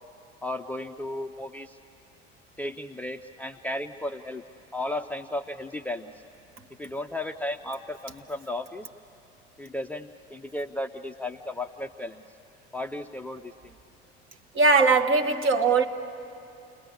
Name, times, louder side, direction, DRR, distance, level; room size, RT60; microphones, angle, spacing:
voice 1, 0.4-1.8 2.6-4.4 4.7-6.1 6.8-8.9 9.6-12.2 12.7-13.7, left 1 dB, 5° left, 0.6 m, -34 dB
voice 2, 14.5-15.8, right 4 dB, 40° right, 1.5 m, -20 dB
29.5 x 20.0 x 9.9 m
figure-of-eight pair, 65°, 33 cm